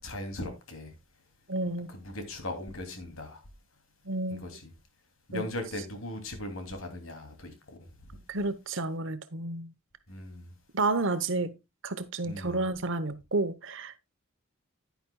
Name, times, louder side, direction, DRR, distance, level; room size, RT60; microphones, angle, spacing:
voice 1, 0.0-0.9 1.9-3.4 4.3-4.7 5.3-7.5 7.8-7.9 10.1-10.5 12.2-12.6, left 1 dB, 85° left, 2.9 m, -38 dB
voice 2, 1.5-1.9 4.0-4.4 5.3-5.4 8.3-9.7 10.7-11.5 11.8-14.1, right 2 dB, 65° right, 1.0 m, -31 dB
10.5 x 10.5 x 2.3 m
head